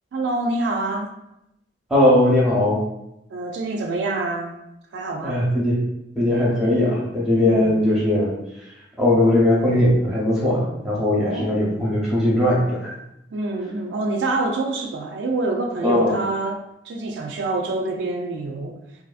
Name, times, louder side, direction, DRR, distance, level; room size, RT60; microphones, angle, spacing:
voice 1, 0.1-1.2 3.3-4.6 4.9-5.4 7.4-7.8 11.2-11.6 13.3-18.8, right 2 dB, 65° right, 2 dB, 0.3 m, -26 dB
voice 2, 1.9-2.8 5.2-5.8 6.2-8.3 9.0-12.9 15.8-16.2, left 1 dB, 5° right, -6 dB, 0.7 m, -19 dB
2.6 x 2.5 x 2.4 m, 0.84 s
head